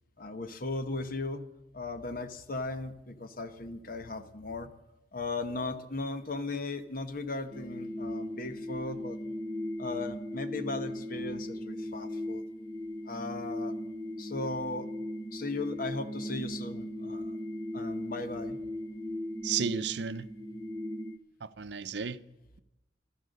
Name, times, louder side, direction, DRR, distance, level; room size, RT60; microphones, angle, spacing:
voice 1, 0.2-1.4 1.7-4.7 5.1-9.2 9.8-12.4 13.1-13.7 14.2-14.9 15.3-17.4 17.7-18.6, left 2 dB, 50° left, 1.1 m, -37 dB
sound 1, 7.5-21.2, left 1 dB, 15° left, 0.8 m, -38 dB
voice 2, 19.4-20.3 21.4-22.2, right 6 dB, 65° right, 0.7 m, -33 dB
15.0 x 13.0 x 6.5 m
head